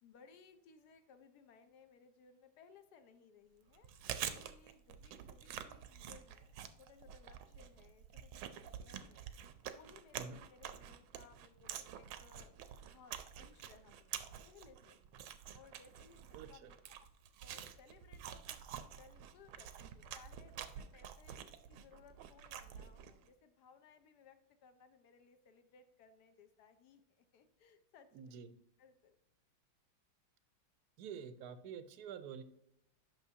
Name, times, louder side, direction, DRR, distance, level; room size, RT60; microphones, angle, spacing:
voice 1, 0.0-3.9 4.3-9.3 9.7-15.1 15.5-17.1 17.4-18.7 18.9-21.4 21.7-28.4 28.8-29.2, left 6 dB, 65° left, 9 dB, 1.1 m, -63 dB
Chewing mastication, 3.7-23.3, right 9 dB, 90° right, 1.5 m, -48 dB
voice 2, 16.3-16.7 28.1-28.5 31.0-32.4, right 7 dB, 70° right, 11 dB, 0.9 m, -48 dB
9.1 x 6.0 x 2.8 m, 0.77 s
omnidirectional pair, 2.2 m